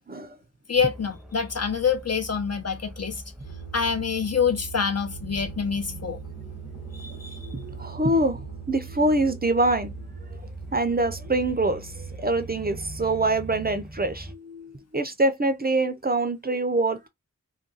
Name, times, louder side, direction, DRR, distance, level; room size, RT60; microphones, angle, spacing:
voice 1, 0.7-3.2 3.7-6.2 6.9-7.5, left 6 dB, 50° left, 0.7 m, -26 dB
sound 1, 0.7-14.3, equal, ahead, 0.7 m, -42 dB
sound 2, 3.4-13.7, right 10 dB, 85° left, 1.2 m, -42 dB
voice 2, 7.4-9.9 10.7-17.1, right 2 dB, 30° right, 0.5 m, -25 dB
2.4 x 2.2 x 3.8 m
wide cardioid pair, 65°, 32 cm